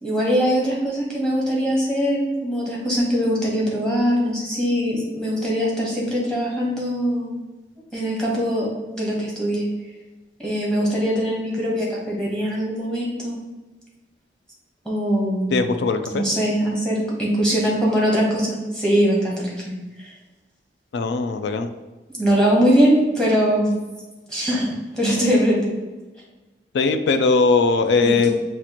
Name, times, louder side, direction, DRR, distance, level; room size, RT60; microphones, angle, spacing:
voice 1, 0.0-7.3 7.9-8.7 8.9-9.7 10.4-13.4 14.8-15.6 16.1-19.7 20.0-20.1 22.1-23.8 24.3-25.8 28.0-28.3, equal, 5° left, -4 dB, 1.0 m, -22 dB
voice 2, 15.5-16.2 20.9-21.7 26.7-28.3, left 4 dB, 75° left, 9 dB, 0.3 m, -19 dB
5.7 x 2.5 x 2.9 m, 1.2 s
head